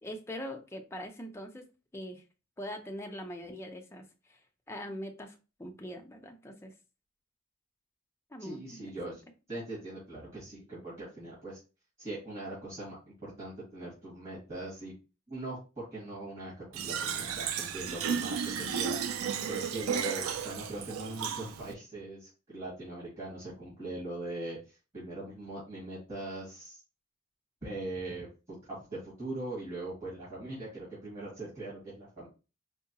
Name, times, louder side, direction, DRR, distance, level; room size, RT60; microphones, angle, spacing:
voice 1, 0.0-1.6 1.9-2.2 2.6-4.0 4.3-4.4 4.7-5.3 5.6-6.7 8.3-9.2, equal, 15° left, 3 dB, 0.5 m, -42 dB
voice 2, 8.4-9.2 9.5-11.6 12.0-14.9 15.3-19.0 19.5-26.8 27.6-28.3 28.7-32.3, right 2 dB, 35° right, -9 dB, 1.8 m, -41 dB
Fill (with liquid), 16.7-21.7, right 7 dB, 85° right, 0.4 m, -33 dB
4.5 x 2.2 x 2.8 m, 0.32 s
head